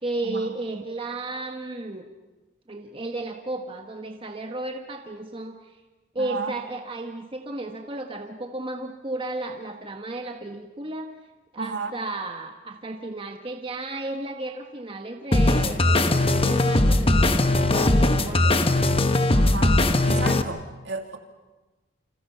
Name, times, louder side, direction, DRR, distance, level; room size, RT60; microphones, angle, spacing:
voice 1, 0.0-2.0 2.7-5.7 6.1-11.1 11.5-18.7, right 2 dB, 30° right, 4 dB, 1.4 m, -34 dB
voice 2, 6.2-6.5 11.6-11.9 19.3-19.8 20.0-21.2, right 4 dB, 65° right, 5 dB, 2.5 m, -32 dB
sound 1, 15.3-20.4, left 2 dB, 30° left, 1.2 m, -20 dB
29.0 x 27.0 x 5.7 m, 1.2 s
head